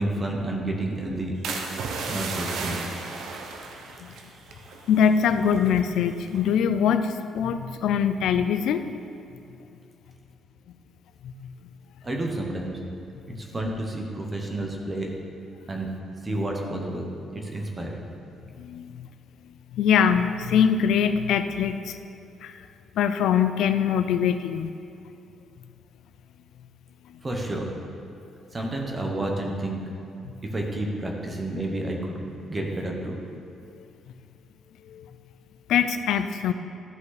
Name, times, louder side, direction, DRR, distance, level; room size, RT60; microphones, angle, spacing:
voice 1, 0.0-1.4 2.1-2.8 12.0-12.8 13.3-15.1 15.7-15.9 16.2-18.0 27.2-27.7 28.5-29.8 30.4-32.2 32.5-33.2, right 1 dB, 20° right, 1 dB, 1.1 m, -30 dB
sound 1, 1.4-5.8 6.3-6.6, right 4 dB, 80° right, 0.9 m, -34 dB
voice 2, 4.9-8.8 11.2-11.5 13.3-13.4 18.6-19.1 19.7-22.0 22.4-22.5 23.0-24.7 34.9-35.1 35.7-36.5, left 7 dB, 75° left, 10 dB, 0.4 m, -23 dB
12.5 x 5.5 x 4.1 m, 2.7 s
cardioid pair, 155°, 0 cm